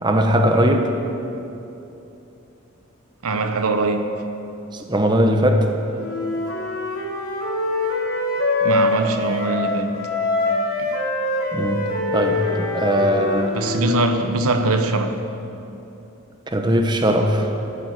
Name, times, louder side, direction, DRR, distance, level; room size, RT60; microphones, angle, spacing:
voice 1, 0.0-0.9 4.7-5.7 11.5-11.8 12.1-13.6 16.5-17.5, equal, 20° right, 4 dB, 0.8 m, -19 dB
voice 2, 3.2-4.1 8.6-10.0 10.8-10.9 13.5-15.2, right 2 dB, 85° right, 7 dB, 0.9 m, -22 dB
Wind instrument woodwind instrument, 6.0-9.7 10.0-13.9, left 2 dB, 85° left, 2.9 m, -24 dB
13.0 x 9.2 x 7.9 m, 2.9 s
head